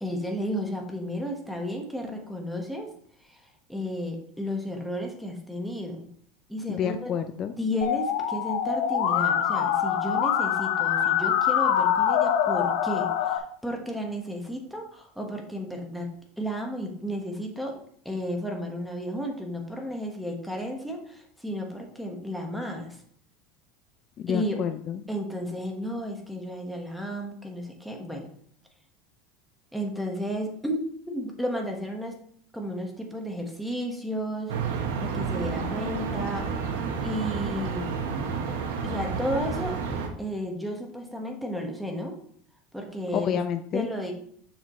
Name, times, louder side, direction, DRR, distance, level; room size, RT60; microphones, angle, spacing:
voice 1, 0.0-2.9 3.2-6.1 6.5-7.1 7.6-16.1 16.4-17.8 18.0-23.0 24.3-24.6 25.1-28.3 29.7-32.2 32.5-34.5 35.0-36.5 37.0-38.0 38.8-39.8 40.2-42.2 42.7-43.4 43.7-44.1, equal, ahead, 1 dB, 1.4 m, -33 dB
voice 2, 6.7-7.5 24.2-25.0 43.1-43.9, left 8 dB, 35° left, 8 dB, 0.4 m, -29 dB
Musical instrument, 7.8-13.4, left 9 dB, 70° left, 0.7 m, -24 dB
sound 1, 34.5-40.1, right 5 dB, 90° right, 1.3 m, -30 dB
7.4 x 5.9 x 3.1 m, 0.62 s
supercardioid pair, 140°, 0 cm